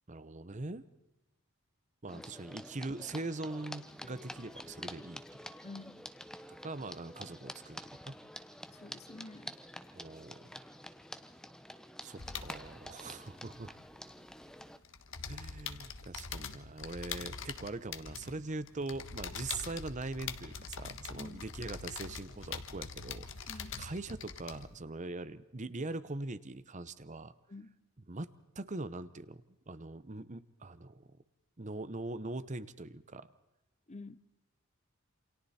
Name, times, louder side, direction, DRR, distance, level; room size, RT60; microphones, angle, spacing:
voice 1, 0.1-0.8 2.0-5.2 6.6-8.1 9.9-10.4 12.0-13.7 15.3-27.3 28.1-28.3 28.6-31.2 31.6-33.3, right 2 dB, 35° right, 0.9 m, -42 dB
sound 1, 2.1-14.8, equal, 5° left, 0.9 m, -48 dB
voice 2, 5.6-6.1 8.7-9.6 21.1-21.5 23.5-23.8 27.5-27.8 33.9-34.3, left 2 dB, 30° left, 0.7 m, -49 dB
sound 2, 12.2-14.4 14.7-24.8, left 6 dB, 60° left, 1.5 m, -44 dB
28.5 x 27.5 x 4.3 m
head